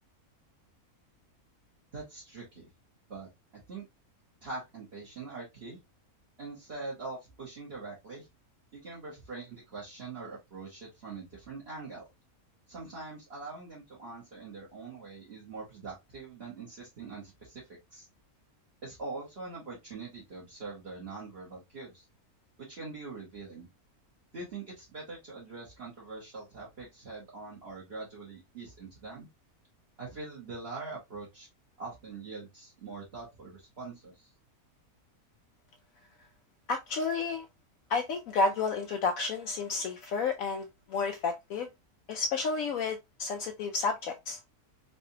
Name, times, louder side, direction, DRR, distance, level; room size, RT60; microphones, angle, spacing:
voice 1, 1.9-2.6 3.1-3.3 3.7-3.8 4.4-5.8 6.4-8.3 8.7-12.1 12.7-18.1 18.8-22.0 22.6-23.7 24.3-29.3 30.0-31.5 31.8-34.3, right 3 dB, 45° right, 1.5 m, -43 dB
voice 2, 36.7-37.5 37.9-41.7 42.1-44.4, left 4 dB, 70° left, 0.9 m, -31 dB
4.0 x 2.6 x 2.8 m
omnidirectional pair, 1.6 m